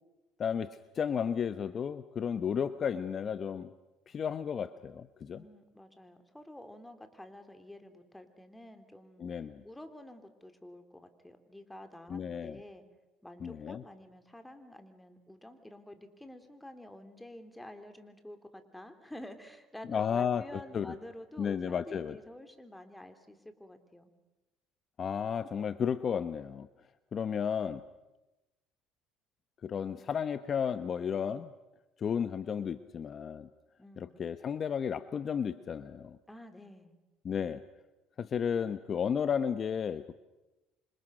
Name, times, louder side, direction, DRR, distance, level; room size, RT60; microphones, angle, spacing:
voice 1, 0.4-3.7 4.1-5.4 9.2-9.6 12.1-12.6 13.4-13.8 19.9-20.9 21.4-22.2 25.0-26.7 27.1-27.8 29.6-31.5 32.0-33.5 34.0-36.2 37.2-37.6 38.2-40.2, left 7 dB, 40° left, 12 dB, 1.0 m, -33 dB
voice 2, 5.3-9.2 9.6-12.8 13.2-24.1 33.8-34.2 36.3-36.9, left 1 dB, 5° left, 7 dB, 3.3 m, -49 dB
28.0 x 26.0 x 6.5 m, 1.0 s
supercardioid pair, 105°, 0 cm